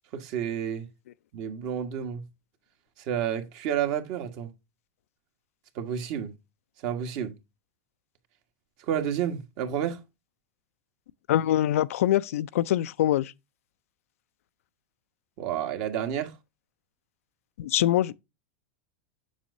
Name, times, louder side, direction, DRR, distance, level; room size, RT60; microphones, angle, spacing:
voice 1, 0.1-0.9 1.3-2.2 3.1-4.5 5.7-6.3 6.8-7.3 8.9-10.0 15.4-16.3, right 9 dB, 55° right, 1.5 m, -30 dB
voice 2, 11.3-13.3 17.6-18.1, left 12 dB, 80° left, 0.4 m, -24 dB
7.2 x 6.4 x 2.6 m
supercardioid pair, 125°, 7 cm